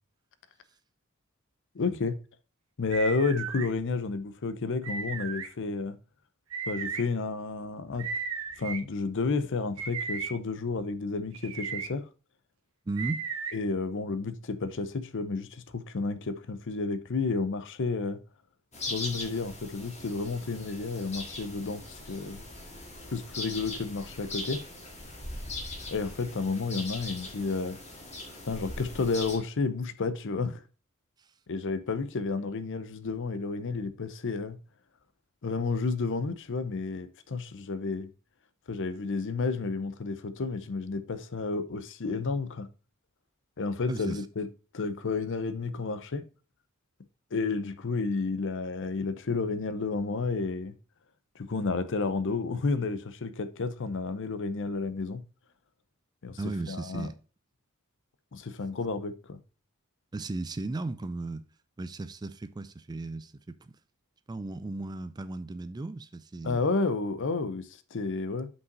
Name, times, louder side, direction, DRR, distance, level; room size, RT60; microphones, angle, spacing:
voice 1, 1.7-2.2 2.8-6.0 6.7-8.1 8.6-12.1 13.5-18.2 18.9-22.4 23.1-24.6 25.9-27.8 28.4-30.6 31.5-34.6 35.4-38.1 38.7-42.7 43.6-44.5 44.7-46.2 47.3-50.7 51.4-55.2 56.2-56.4 56.7-57.1 58.3-59.4 66.4-68.5, left 4 dB, 60° left, 0.6 m, -31 dB
sound 1, 2.9-3.7 4.8-5.5 6.5-7.0 8.0-8.8 9.8-10.3 11.3-11.9 13.0-13.5, right 5 dB, 70° right, 1.0 m, -35 dB
voice 2, 12.9-13.3 31.2-31.3 43.9-44.3 56.4-57.2 60.1-61.5 61.8-63.7 64.3-66.6, right 2 dB, 20° right, 0.3 m, -36 dB
sound 2, 18.7-29.4, left 2 dB, 30° left, 1.9 m, -40 dB
5.6 x 5.5 x 3.8 m
head